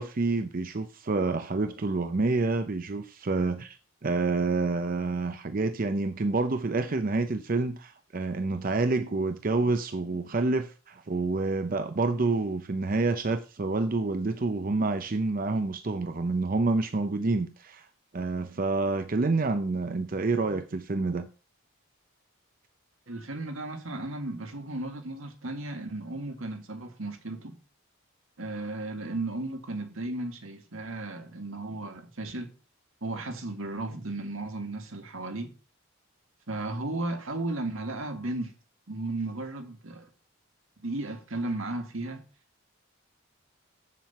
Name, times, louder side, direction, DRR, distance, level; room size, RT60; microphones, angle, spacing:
voice 1, 0.0-3.8 4.0-17.9 18.1-21.3, right 3 dB, 40° right, 0.5 m, -28 dB
voice 2, 23.1-27.6 28.4-32.5 33.0-35.5 36.5-38.5 38.9-40.1 40.8-42.2, right 2 dB, 75° right, 1.8 m, -35 dB
7.6 x 7.4 x 5.6 m
head